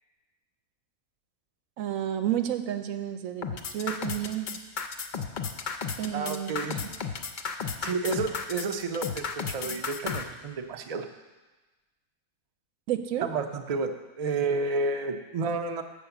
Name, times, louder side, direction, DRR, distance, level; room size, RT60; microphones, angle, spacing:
voice 1, 1.8-3.5 3.7-4.5 6.0-6.9 12.9-13.3, right 11 dB, 80° right, 8 dB, 1.0 m, -31 dB
sound 1, 3.4-10.2, left 6 dB, 60° left, 0.4 m, -33 dB
voice 2, 6.1-6.8 7.8-11.1 13.2-13.9 14.2-15.8, right 3 dB, 65° right, 6 dB, 0.3 m, -30 dB
7.2 x 5.0 x 6.9 m, 1.2 s
omnidirectional pair, 1.4 m